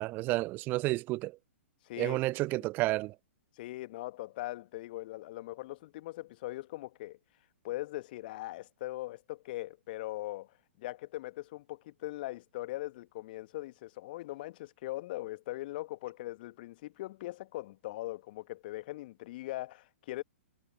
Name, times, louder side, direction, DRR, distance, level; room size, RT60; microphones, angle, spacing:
voice 1, 0.0-1.4 2.0-3.1, right 20 dB, 25° right, 0.5 m, -31 dB
voice 2, 1.8-2.2 3.5-7.2 7.6-10.5 10.8-20.2, left 17 dB, 40° left, 1.6 m, -40 dB
figure-of-eight pair, 115°, 7 cm